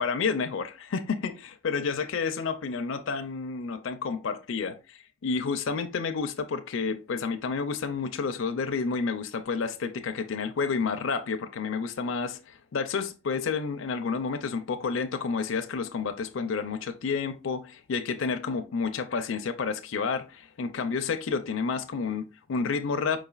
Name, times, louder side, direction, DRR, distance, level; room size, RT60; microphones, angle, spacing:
voice 1, 0.0-0.7 0.9-23.2, left 5 dB, 75° left, 0.5 m, -30 dB
5.0 x 4.0 x 2.3 m
head